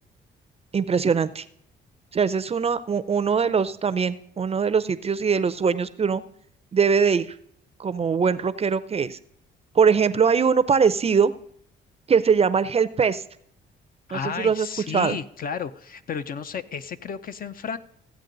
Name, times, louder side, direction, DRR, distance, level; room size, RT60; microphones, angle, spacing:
voice 1, 0.7-1.4 2.1-6.2 6.7-7.3 7.8-9.2 9.7-11.3 12.1-13.2 14.1-14.7 14.9-15.2, right 6 dB, 30° right, 14 dB, 0.5 m, -21 dB
voice 2, 14.1-17.8, left 6 dB, 45° left, 12 dB, 0.5 m, -32 dB
14.5 x 8.3 x 3.9 m, 0.69 s
cardioid pair, 90°, 20 cm